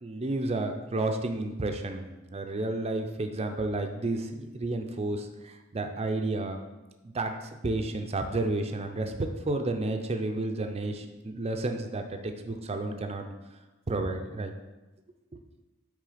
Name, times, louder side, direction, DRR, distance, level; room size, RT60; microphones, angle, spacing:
voice 1, 0.0-2.0 2.3-6.6 7.0-13.3 13.9-14.5, right 2 dB, 30° right, 5 dB, 0.5 m, -31 dB
8.4 x 3.4 x 5.0 m, 1.1 s
head